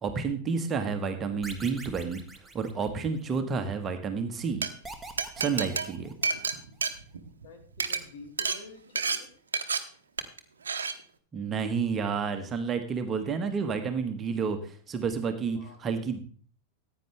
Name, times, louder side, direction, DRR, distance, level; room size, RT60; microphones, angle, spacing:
voice 1, 0.0-2.2 2.5-4.7 5.4-6.1 11.3-16.2, right 5 dB, 25° right, 6 dB, 1.5 m, -30 dB
sound 1, 1.4-3.4 4.8-6.6, right 2 dB, 5° right, 1.7 m, -45 dB
Glass, 4.4-4.7 5.2-7.5 7.7-8.0 8.4-8.6 9.0-9.2 9.5-9.8 10.2-10.4 10.7-10.9, right 5 dB, 70° right, 1.0 m, -29 dB
voice 2, 7.4-9.3 15.6-15.8, left 4 dB, 50° left, 4 dB, 2.9 m, -48 dB
15.0 x 9.1 x 3.4 m, 0.43 s
figure-of-eight pair, 90°, 0 cm